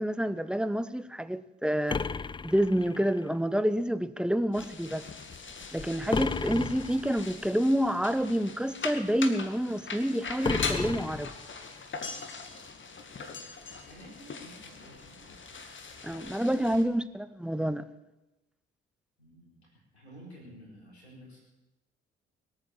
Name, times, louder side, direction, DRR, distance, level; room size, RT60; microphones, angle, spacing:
voice 1, 0.0-2.0 2.4-5.0 5.7-11.3 16.0-17.9, equal, 5° right, 0.9 m, -28 dB
sound 1, 1.9-3.3 6.1-7.3 10.4-11.8, left 5 dB, 15° left, 0.5 m, -33 dB
sound 2, 4.5-16.8, left 4 dB, 35° left, 2.1 m, -41 dB
voice 2, 13.8-15.4 19.2-21.4, equal, 90° left, 4.3 m, -52 dB
22.0 x 9.1 x 7.2 m
figure-of-eight pair, 40°, 32 cm